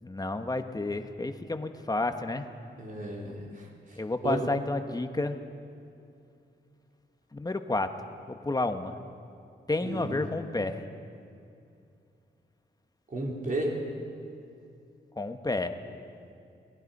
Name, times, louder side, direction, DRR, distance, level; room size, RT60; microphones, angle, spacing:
voice 1, 0.0-2.5 4.0-5.4 7.3-7.9 8.3-9.0 9.7-10.8 15.2-15.8, left 2 dB, 20° left, 8 dB, 1.2 m, -31 dB
voice 2, 2.8-3.7 4.2-4.5 9.8-10.2 13.1-13.8, right 1 dB, 45° right, -2 dB, 3.6 m, -33 dB
29.5 x 19.0 x 5.4 m, 2.5 s
wide cardioid pair, 110°, 19 cm